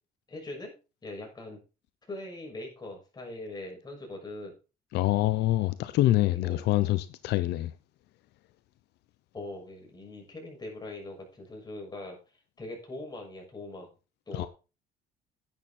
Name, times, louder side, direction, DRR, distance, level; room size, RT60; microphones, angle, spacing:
voice 1, 0.3-0.7 1.0-1.6 2.1-4.6 6.2-6.6 9.3-12.2 12.6-13.9 14.3-14.5, left 2 dB, 25° left, 6.6 m, -41 dB
voice 2, 4.9-7.7 14.3-14.5, left 16 dB, 80° left, 0.8 m, -25 dB
10.5 x 9.4 x 4.4 m
cardioid pair, 110°, 17 cm